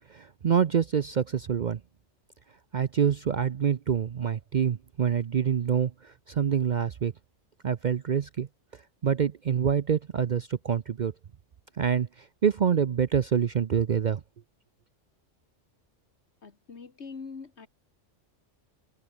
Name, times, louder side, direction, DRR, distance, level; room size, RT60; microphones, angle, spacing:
voice 1, 0.1-1.8 2.7-7.1 7.6-8.5 9.0-11.1 11.8-14.2, right 7 dB, 50° right, 0.6 m, -26 dB
voice 2, 16.4-17.7, left 5 dB, 65° left, 2.0 m, -43 dB
omnidirectional pair, 1.3 m